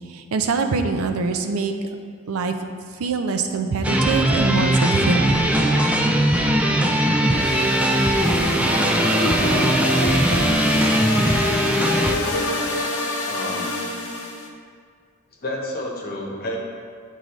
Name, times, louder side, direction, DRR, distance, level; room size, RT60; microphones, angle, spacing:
voice 1, 0.1-1.7 2.3-2.6 3.0-5.5, right 4 dB, 75° right, 6 dB, 0.5 m, -24 dB
sound 1, 3.8-12.1, right 1 dB, 5° right, 0.3 m, -20 dB
sound 2, 7.4-14.5, left 1 dB, 75° left, 0.8 m, -26 dB
voice 2, 13.3-13.7 15.4-16.6, left 1 dB, 45° left, -2 dB, 1.0 m, -30 dB
8.2 x 3.8 x 3.1 m, 2.1 s
head